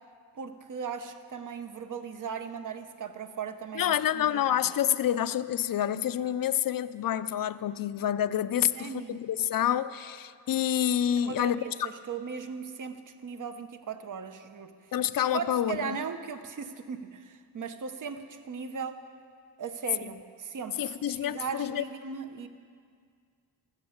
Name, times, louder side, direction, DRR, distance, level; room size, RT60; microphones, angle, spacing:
voice 1, 0.4-4.5 8.7-9.2 11.2-14.7 15.3-19.0 19.6-22.5, right 6 dB, 50° right, 9 dB, 0.9 m, -38 dB
voice 2, 3.7-11.9 14.9-16.0 20.0-20.1 20.8-21.8, left 10 dB, 55° left, 14 dB, 0.5 m, -28 dB
15.0 x 14.5 x 6.5 m, 2.1 s
wide cardioid pair, 160°, 41 cm